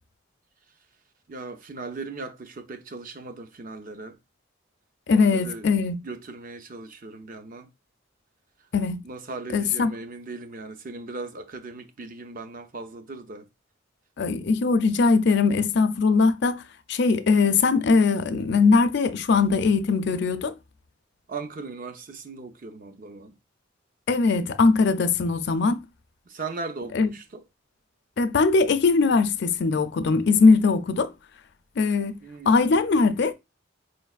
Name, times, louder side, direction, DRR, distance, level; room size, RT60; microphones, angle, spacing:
voice 1, 1.3-4.2 5.1-5.7 6.0-7.7 9.0-13.5 21.3-23.4 25.7-25.8 26.3-27.4 32.2-32.6, right 3 dB, 45° right, 0.5 m, -38 dB
voice 2, 5.1-6.0 8.7-9.0 9.5-9.9 14.2-16.6 16.9-20.5 24.1-25.8 26.9-27.1 28.2-31.1 31.8-32.2 32.5-33.3, left 4 dB, 60° left, 0.4 m, -21 dB
4.9 x 3.2 x 2.3 m
head